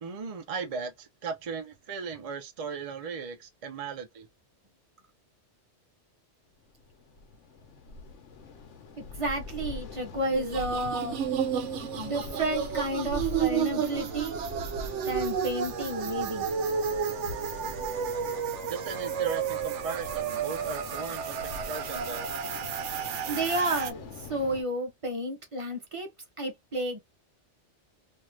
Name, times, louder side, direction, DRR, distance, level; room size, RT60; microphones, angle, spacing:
voice 1, 0.0-4.3 18.7-22.3, right 5 dB, 45° right, 0.5 m, -37 dB
sound 1, 6.7-24.6, left 3 dB, 85° left, 1.0 m, -43 dB
voice 2, 9.0-11.2 11.9-14.4 15.1-16.5 23.3-26.1 26.4-27.0, right 1 dB, 30° right, 0.8 m, -31 dB
sound 2, 10.3-23.9, right 8 dB, 85° right, 0.9 m, -32 dB
2.7 x 2.4 x 3.1 m
omnidirectional pair, 1.2 m